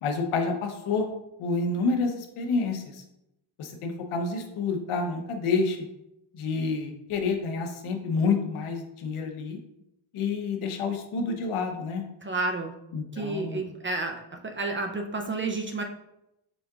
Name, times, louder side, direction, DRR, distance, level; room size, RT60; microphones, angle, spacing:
voice 1, 0.0-1.1 1.4-3.0 3.6-5.9 6.3-9.6 10.1-12.0 12.9-13.6, left 4 dB, 80° left, 4 dB, 0.9 m, -28 dB
voice 2, 12.2-12.7 13.1-15.8, right 3 dB, 25° right, 4 dB, 0.4 m, -30 dB
5.1 x 3.6 x 2.3 m, 0.85 s
cardioid pair, 95°, 49 cm